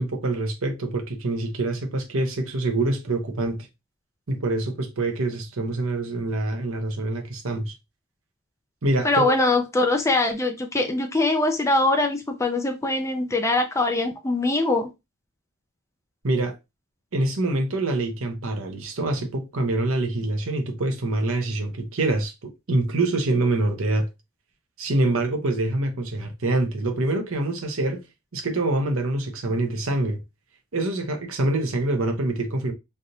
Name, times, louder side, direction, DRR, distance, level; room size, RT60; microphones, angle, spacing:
voice 1, 0.0-3.7 4.3-7.7 8.8-9.3 16.2-16.6 17.1-24.1 24.8-28.0 28.3-30.2 30.7-32.7, right 2 dB, 70° right, 0.8 m, -25 dB
voice 2, 9.0-14.9, left 2 dB, 15° left, 0.4 m, -22 dB
3.3 x 2.6 x 2.7 m
head